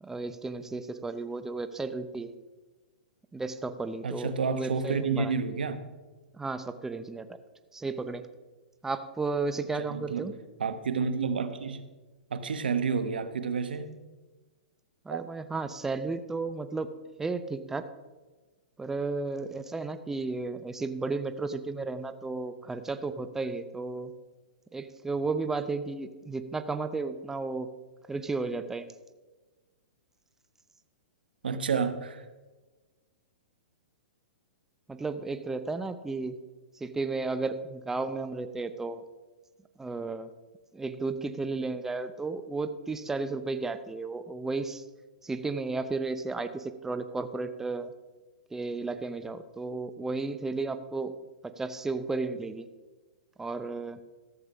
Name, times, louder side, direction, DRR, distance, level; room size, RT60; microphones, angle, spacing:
voice 1, 0.0-2.3 3.3-5.3 6.4-7.3 7.7-8.2 8.8-10.3 15.0-16.9 17.2-17.8 18.8-24.1 24.7-27.7 28.1-28.8 34.9-36.4 36.8-39.0 39.8-40.3 40.7-44.8 45.2-47.9 48.5-51.1 51.6-52.7 53.4-54.0, right 3 dB, 10° right, 10 dB, 0.7 m, -33 dB
voice 2, 4.0-5.8 9.7-10.3 10.6-11.8 12.3-14.0 15.1-15.2 31.4-32.2, right 5 dB, 85° right, 10 dB, 1.1 m, -30 dB
14.0 x 6.7 x 5.5 m, 1.3 s
hypercardioid pair, 130°, 5 cm